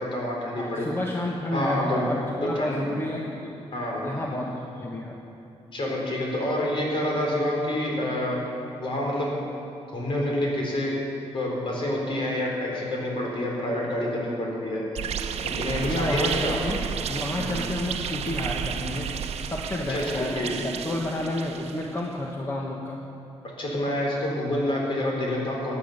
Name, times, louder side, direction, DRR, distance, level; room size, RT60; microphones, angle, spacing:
voice 1, 0.0-0.9 1.5-2.0 2.4-2.8 3.7-4.1 5.7-8.4 8.8-9.3 9.9-10.9 11.3-14.8 15.6-16.6 17.4-17.5 19.9-20.5 23.6-25.8, left 1 dB, 50° left, -2 dB, 4.1 m, -27 dB
voice 2, 0.6-3.5 4.0-5.2 15.7-19.1 19.4-23.0, left 1 dB, 20° left, -1 dB, 1.3 m, -30 dB
sound 1, 14.9-22.0, right 7 dB, 70° right, 0.8 m, -32 dB
16.0 x 10.0 x 6.7 m, 2.8 s
cardioid pair, 125°, 11 cm